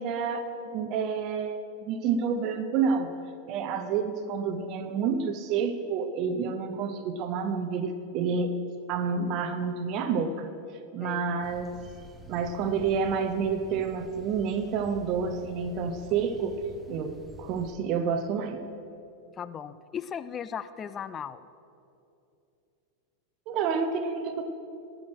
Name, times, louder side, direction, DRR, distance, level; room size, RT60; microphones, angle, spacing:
voice 1, 0.0-3.1 3.5-8.6 8.9-10.5 10.9-11.8 12.3-16.6 16.9-18.6 23.5-24.4, right 5 dB, 45° right, 9 dB, 0.7 m, -29 dB
sound 1, 11.4-17.7, right 1 dB, 10° right, 0.9 m, -48 dB
voice 2, 19.3-21.5, left 8 dB, 25° left, 14 dB, 0.3 m, -37 dB
13.5 x 6.2 x 6.2 m, 2.7 s
hypercardioid pair, 120°, 0 cm